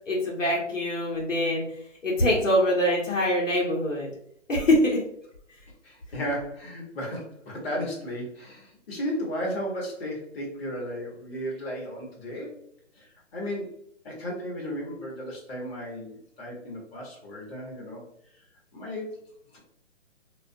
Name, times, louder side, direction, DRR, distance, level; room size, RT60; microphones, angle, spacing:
voice 1, 0.1-1.6 2.0-4.1 4.5-5.0, left 1 dB, 75° left, -3 dB, 1.0 m, -24 dB
voice 2, 5.8-12.5 13.0-13.8 14.0-18.0 18.7-19.2 19.5-19.6, equal, 50° left, -3 dB, 1.0 m, -34 dB
2.4 x 2.2 x 2.5 m, 0.69 s
hypercardioid pair, 160°, 38 cm